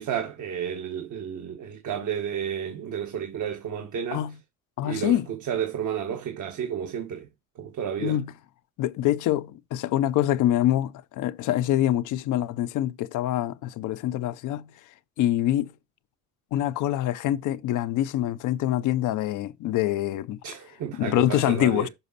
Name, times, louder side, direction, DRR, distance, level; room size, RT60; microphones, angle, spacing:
voice 1, 0.0-4.2 4.8-7.3 7.6-8.2 20.4-21.9, right 8 dB, 75° right, 1.4 m, -31 dB
voice 2, 4.8-5.3 8.0-8.3 8.8-14.7 15.2-15.7 16.5-20.4 20.9-21.9, left 13 dB, 90° left, 0.6 m, -25 dB
6.9 x 5.1 x 4.0 m
cardioid pair, 90°, 30 cm